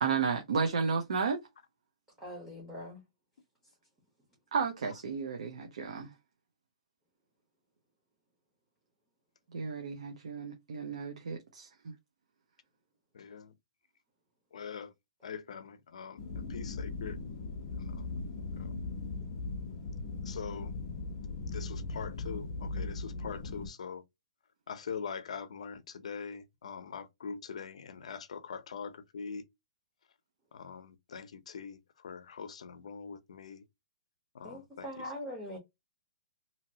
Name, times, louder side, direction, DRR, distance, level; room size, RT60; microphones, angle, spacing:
voice 1, 0.0-1.4 4.5-6.1 9.5-11.7, right 5 dB, 75° right, 0.7 m, -32 dB
voice 2, 2.2-3.0 34.4-35.6, equal, 10° right, 1.0 m, -42 dB
voice 3, 13.1-13.5 14.5-14.9 15.2-17.2 17.7-18.1 18.5-18.7 20.2-20.7 21.5-24.0 24.7-29.4 30.5-33.6 34.3-35.0, left 6 dB, 70° left, 0.6 m, -43 dB
sound 1, 16.2-23.7, left 3 dB, 35° left, 0.7 m, -39 dB
2.9 x 2.8 x 2.7 m
hypercardioid pair, 175°, 4 cm